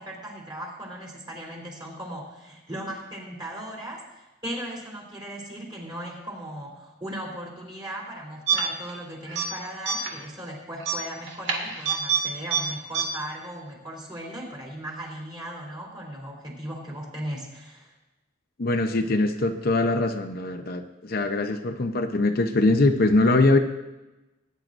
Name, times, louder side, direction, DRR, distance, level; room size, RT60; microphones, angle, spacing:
voice 1, 0.0-17.9, right 1 dB, 25° right, -3 dB, 3.3 m, -37 dB
sound 1, 8.5-9.0 9.3-9.5 9.9-10.2 10.8-12.2 12.5-12.6 12.9-13.0, right 7 dB, 65° right, 2.3 m, -25 dB
voice 2, 18.6-23.6, left 2 dB, 50° left, 5 dB, 0.7 m, -22 dB
20.0 x 10.5 x 2.6 m, 1.0 s
head